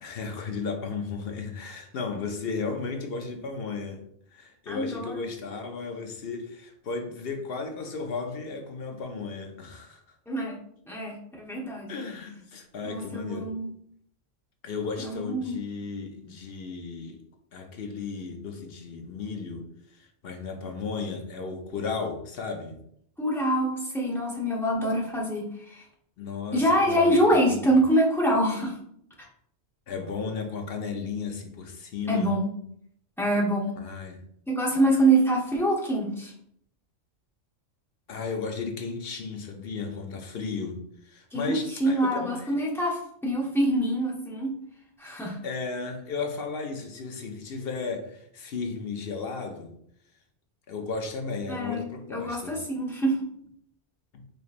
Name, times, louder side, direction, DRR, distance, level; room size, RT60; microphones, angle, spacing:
voice 1, 0.0-4.0 4.3-10.0 11.9-13.5 14.6-17.2 17.5-22.8 26.2-27.8 29.9-32.3 33.8-34.2 38.1-42.5 45.4-49.7 50.7-52.6 54.1-54.2, left 4 dB, 60° left, 4 dB, 0.8 m, -34 dB
voice 2, 4.7-5.2 10.3-10.6 10.9-11.9 12.8-13.7 15.0-15.6 23.2-25.8 26.5-28.8 29.2-29.3 32.1-32.5 33.2-33.8 34.5-36.3 41.3-44.6 45.0-45.4 51.5-53.2, right 1 dB, ahead, -4 dB, 0.8 m, -25 dB
5.0 x 3.0 x 2.5 m, 0.68 s
omnidirectional pair, 1.2 m